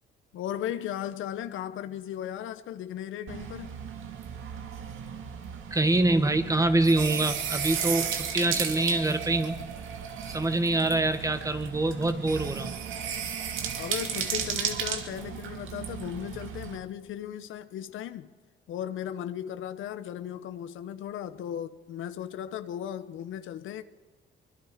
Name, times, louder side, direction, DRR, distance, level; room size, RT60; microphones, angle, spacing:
voice 1, 0.3-3.8 13.7-18.3 18.7-23.8, left 10 dB, 80° left, 1.0 m, -36 dB
sound 1, 3.3-16.8, right 7 dB, 85° right, 2.2 m, -34 dB
voice 2, 5.7-9.7 10.3-12.7, right 2 dB, 15° right, 1.7 m, -25 dB
24.0 x 22.0 x 5.1 m
cardioid pair, 90°, 20 cm